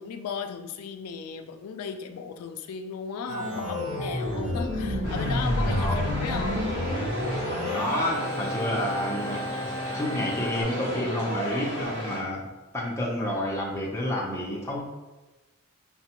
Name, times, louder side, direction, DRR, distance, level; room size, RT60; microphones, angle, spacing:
voice 1, 0.0-6.6, left 6 dB, 85° left, 7 dB, 0.3 m, -36 dB
Organ, 3.3-10.6, left 1 dB, 80° right, 1.3 m, -30 dB
sound 1, 5.0-12.2, equal, 50° right, 1.0 m, -34 dB
voice 2, 5.8-6.1 7.7-12.5 12.7-14.8, left 1 dB, 10° left, -3 dB, 0.6 m, -30 dB
5.7 x 2.2 x 2.9 m, 1.1 s
head